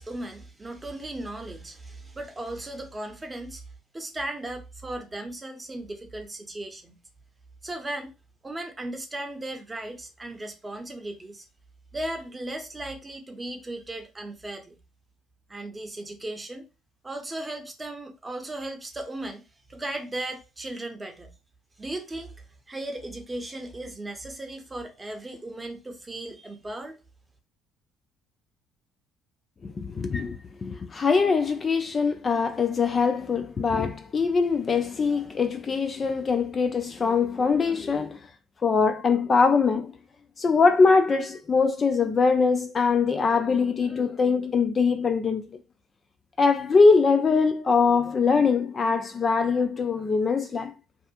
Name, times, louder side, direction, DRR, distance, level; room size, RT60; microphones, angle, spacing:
voice 1, 0.0-3.6 3.9-7.0 7.6-8.1 8.4-11.5 11.9-14.8 15.5-16.7 17.0-19.4 19.7-21.3 21.8-27.0, right 1 dB, 20° right, 0.7 m, -36 dB
voice 2, 29.6-38.2 38.6-39.9 40.4-45.5 46.4-50.7, left 4 dB, 35° left, 0.3 m, -22 dB
2.7 x 2.4 x 2.3 m
hypercardioid pair, 55°, 0 cm